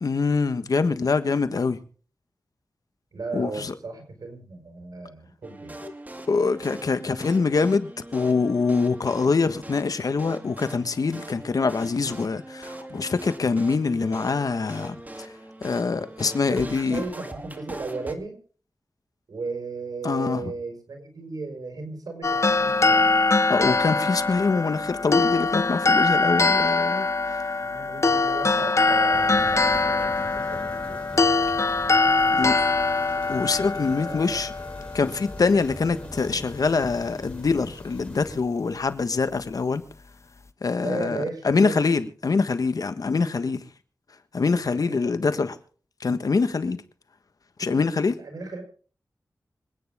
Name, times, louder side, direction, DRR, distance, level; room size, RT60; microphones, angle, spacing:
voice 1, 0.0-1.8 3.3-3.7 5.8-5.9 6.3-15.3 15.6-17.0 20.0-20.5 23.5-27.4 32.3-32.6 33.3-34.5 34.9-39.8 40.6-43.7 44.3-45.5 46.0-46.8 47.6-48.2, left 4 dB, 75° left, 1.4 m, -24 dB
voice 2, 3.1-5.9 16.4-18.4 19.3-23.1 27.6-31.3 32.1-32.4 33.6-34.4 40.8-41.8 44.7-45.5 48.2-48.6, right 3 dB, 85° right, 5.5 m, -36 dB
sound 1, 5.4-18.2, right 1 dB, 25° right, 2.2 m, -41 dB
sound 2, 22.2-35.5, left 3 dB, 50° left, 0.9 m, -23 dB
sound 3, 29.1-38.4, left 1 dB, 20° left, 3.9 m, -42 dB
26.0 x 9.6 x 3.7 m
cardioid pair, 45°, 6 cm